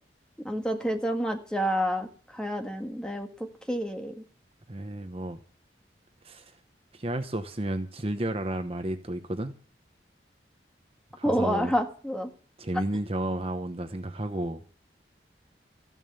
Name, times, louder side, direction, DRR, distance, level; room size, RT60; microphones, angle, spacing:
voice 1, 0.4-2.1 2.3-3.3 3.7-4.1 11.2-12.3, equal, 5° left, 1.7 m, -28 dB
voice 2, 4.7-5.4 6.2-6.6 6.9-9.5 11.2-11.7 12.6-14.6, right 1 dB, 35° right, 1.0 m, -32 dB
14.5 x 11.0 x 6.9 m
head